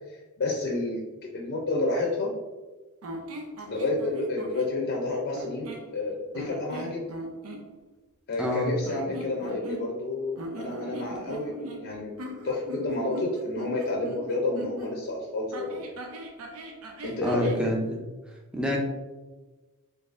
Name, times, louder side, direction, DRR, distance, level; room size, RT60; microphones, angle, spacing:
voice 1, 0.1-1.0 1.3-2.3 3.7-7.1 8.3-15.8 17.0-17.5, left 2 dB, 55° left, -2 dB, 0.5 m, -30 dB
sound 1, 3.0-4.7 5.3-5.9 6.3-7.6 8.8-10.1 10.4-14.9 15.5-17.6, right 1 dB, 85° right, 0.6 m, -40 dB
voice 2, 8.4-8.7 17.2-18.0 18.5-18.8, equal, 5° right, -1 dB, 0.4 m, -27 dB
3.9 x 2.7 x 2.5 m, 1.2 s
head